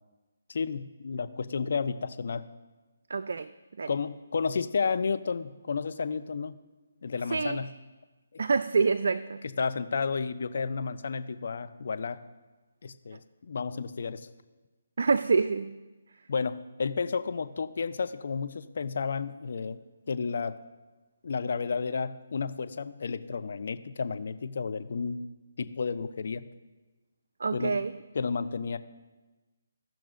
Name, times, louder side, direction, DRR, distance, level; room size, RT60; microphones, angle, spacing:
voice 1, 0.5-2.5 3.9-6.6 7.0-7.7 9.6-12.2 12.8-14.3 16.3-19.8 20.1-20.6 21.2-25.3 25.6-26.5 27.5-27.8 28.1-28.8, left 5 dB, 60° left, 11 dB, 0.5 m, -32 dB
voice 2, 3.1-3.5 3.8-3.9 7.3-7.6 8.4-9.4 15.0-15.8 27.4-28.0, right 4 dB, 65° right, 11 dB, 0.3 m, -26 dB
17.0 x 5.9 x 2.5 m, 1.2 s
figure-of-eight pair, 155°, 0 cm